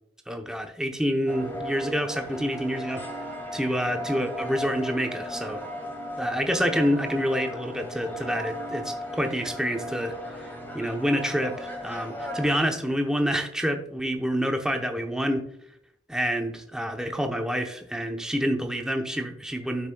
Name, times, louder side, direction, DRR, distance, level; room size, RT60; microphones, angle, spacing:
voice 1, 0.3-3.0 3.5-5.6 6.2-10.1 10.7-15.5 16.1-19.9, equal, 5° right, 4 dB, 0.8 m, -27 dB
sound 1, 1.3-12.6, equal, 10° left, 1.6 m, -36 dB
12.0 x 6.0 x 2.2 m, 0.69 s
head